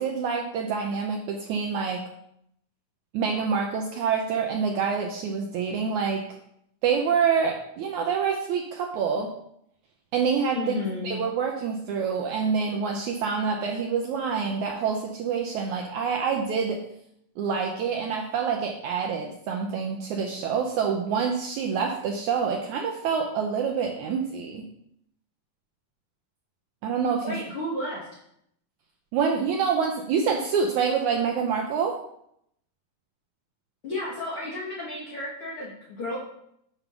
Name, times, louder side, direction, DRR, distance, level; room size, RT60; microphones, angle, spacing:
voice 1, 0.0-2.0 3.1-6.2 6.8-9.3 10.1-10.8 11.0-16.8 17.4-24.7 26.8-27.4 29.1-32.0, right 6 dB, 80° right, 1 dB, 1.8 m, -26 dB
voice 2, 10.5-11.2 27.2-28.2 33.8-36.2, left 2 dB, 60° left, -4 dB, 1.4 m, -32 dB
7.1 x 5.2 x 6.0 m, 0.74 s
omnidirectional pair, 4.2 m